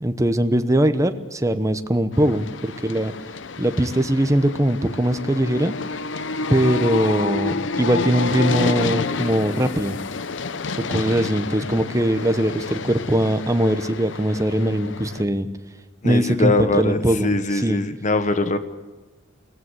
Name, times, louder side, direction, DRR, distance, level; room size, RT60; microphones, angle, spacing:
voice 1, 0.0-3.1 3.6-5.7 6.5-10.0 10.9-15.5 16.0-17.9, right 1 dB, 15° right, 10 dB, 1.0 m, -21 dB
sound 1, 2.1-15.2, left 4 dB, 75° left, 0.8 m, -29 dB
voice 2, 16.0-18.6, left 2 dB, 40° left, 10 dB, 1.3 m, -22 dB
22.0 x 16.5 x 8.1 m, 1.2 s
head